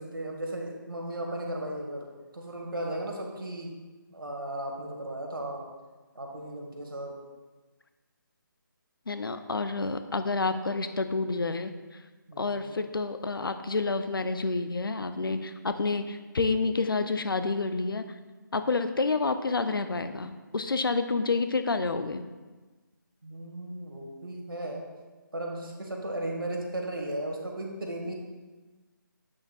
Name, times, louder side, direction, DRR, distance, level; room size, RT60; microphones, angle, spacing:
voice 1, 0.0-2.1 2.3-3.8 4.1-5.6 6.1-7.1 12.3-12.8 23.2-24.8 25.3-28.1, right 1 dB, 85° right, 0 dB, 1.5 m, -36 dB
voice 2, 9.1-12.0 12.4-18.1 18.5-22.2, left 3 dB, 85° left, 9 dB, 0.5 m, -29 dB
8.4 x 6.3 x 2.4 m, 1.3 s
figure-of-eight pair, 160°, 11 cm